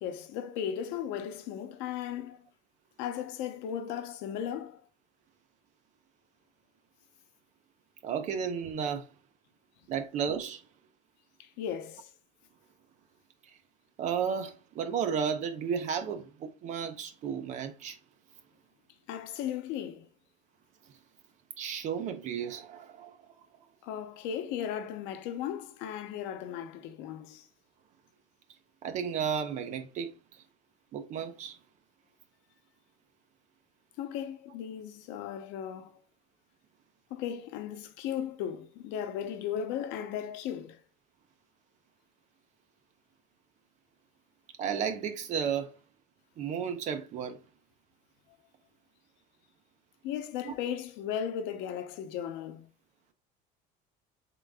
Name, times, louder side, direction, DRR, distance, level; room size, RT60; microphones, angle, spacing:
voice 1, 0.0-2.5 3.0-4.8 11.4-12.1 19.1-20.1 23.8-27.5 34.0-35.9 37.1-40.8 50.0-52.7, left 9 dB, 85° left, 0.8 m, -36 dB
voice 2, 8.0-9.1 9.9-10.6 14.0-18.0 21.6-23.2 28.8-30.1 30.9-31.6 44.6-45.7 46.4-47.4 50.4-50.5, right 7 dB, 40° right, 0.7 m, -33 dB
3.8 x 3.8 x 3.4 m
cardioid pair, 180°, 19 cm